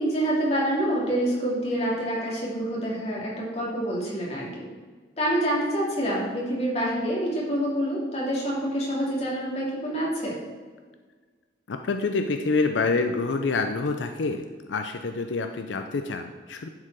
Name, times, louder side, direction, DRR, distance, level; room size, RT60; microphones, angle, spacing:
voice 1, 0.0-4.6 5.2-10.3, right 1 dB, 35° left, -4 dB, 2.5 m, -27 dB
voice 2, 11.7-16.7, left 3 dB, 90° left, 6 dB, 0.5 m, -27 dB
11.0 x 4.8 x 4.7 m, 1.5 s
head